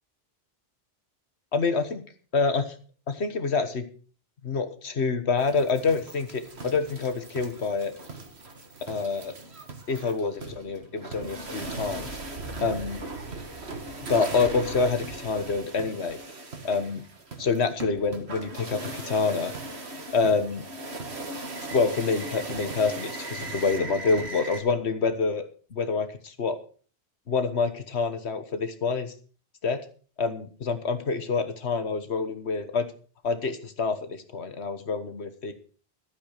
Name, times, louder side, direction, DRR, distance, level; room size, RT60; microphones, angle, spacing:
voice 1, 1.5-2.0 2.3-2.7 3.1-3.8 4.4-7.9 8.9-9.3 9.9-12.1 12.6-13.0 14.1-16.2 16.6-17.0 17.4-19.5 20.1-20.6 21.7-25.4 25.7-26.6 27.3-29.1 29.6-29.8 30.2-32.9 33.2-35.5, left 4 dB, 85° left, 10 dB, 1.7 m, -27 dB
sound 1, 5.4-24.6, right 2 dB, 75° right, 2.1 m, -38 dB
12.5 x 9.5 x 6.4 m, 0.42 s
omnidirectional pair, 1.1 m